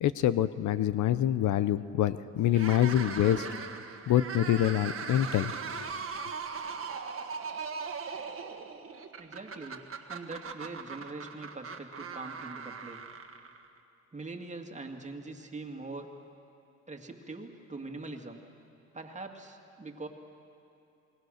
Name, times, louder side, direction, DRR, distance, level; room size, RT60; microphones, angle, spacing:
voice 1, 0.0-3.5 4.1-5.5, left 12 dB, 75° left, 14 dB, 0.7 m, -26 dB
sound 1, 2.5-13.8, right 5 dB, 45° right, 1.6 m, -39 dB
voice 2, 9.2-9.8 10.1-13.0 14.1-16.1 16.9-18.4 18.9-20.1, right 3 dB, 25° right, 3 dB, 2.2 m, -42 dB
28.5 x 21.0 x 6.5 m, 2.7 s
cardioid pair, 90°, 30 cm